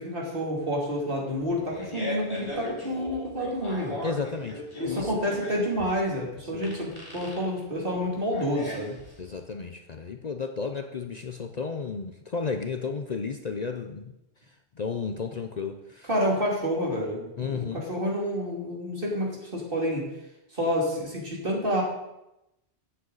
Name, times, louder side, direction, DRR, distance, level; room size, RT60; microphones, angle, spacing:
voice 1, 0.0-4.0 4.7-9.0 16.1-20.0 20.5-21.8, equal, 55° right, -3 dB, 3.0 m, -29 dB
Fart, 1.4-9.4, left 1 dB, 25° left, 3.0 m, -38 dB
voice 2, 4.0-5.2 6.5-6.7 9.2-14.1 14.8-16.1 17.4-17.8, left 5 dB, 45° left, 5 dB, 0.7 m, -33 dB
15.0 x 8.0 x 4.0 m, 0.90 s
omnidirectional pair, 1.1 m